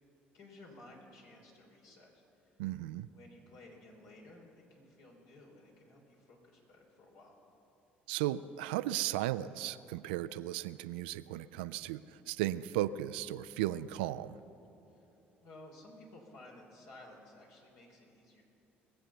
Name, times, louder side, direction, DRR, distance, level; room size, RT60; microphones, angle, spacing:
voice 1, 0.3-2.1 2.4-2.6 3.1-7.4 14.9-15.1 15.4-18.5, left 1 dB, 65° left, -1 dB, 3.3 m, -55 dB
voice 2, 2.6-3.1 8.1-14.4, right 14 dB, 75° right, 15 dB, 0.4 m, -35 dB
21.0 x 7.8 x 6.9 m, 2.9 s
hypercardioid pair, 55°, 5 cm